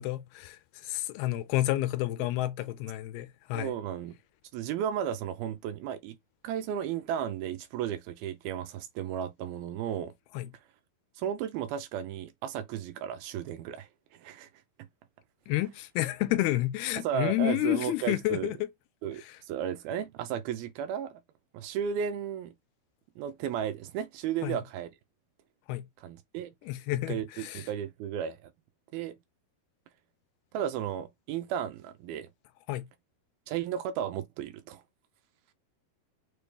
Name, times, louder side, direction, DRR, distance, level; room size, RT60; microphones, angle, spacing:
voice 1, 0.0-3.7 10.3-10.5 15.5-18.7 19.2-19.4 24.4-24.6 25.7-25.9 26.6-27.6 32.7-32.9, left 16 dB, 80° left, 2.4 m, -30 dB
voice 2, 3.5-4.2 4.5-6.2 6.4-10.1 11.2-14.5 17.0-18.5 19.0-21.2 21.5-22.5 23.2-24.9 26.0-26.5 27.1-28.5 28.9-29.2 30.5-32.3 33.5-34.8, right 9 dB, 80° right, 2.3 m, -34 dB
6.7 x 2.3 x 3.4 m
omnidirectional pair, 4.6 m